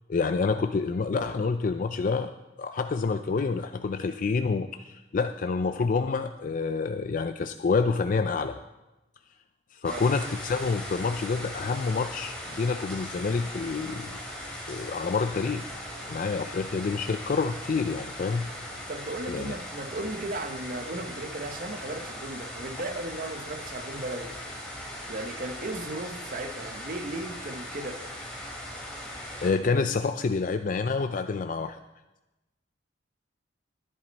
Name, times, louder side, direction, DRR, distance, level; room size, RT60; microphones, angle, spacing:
voice 1, 0.1-2.3 2.6-8.6 9.7-14.2 14.6-15.7 16.1-18.5 19.3-19.5 29.4-31.8, left 4 dB, 45° left, 8 dB, 0.4 m, -28 dB
sound 1, 9.8-29.5, equal, 5° left, 2.8 m, -39 dB
voice 2, 18.9-24.3 25.1-28.1, right 2 dB, 45° right, 7 dB, 0.8 m, -36 dB
14.0 x 10.5 x 4.1 m, 1.0 s
head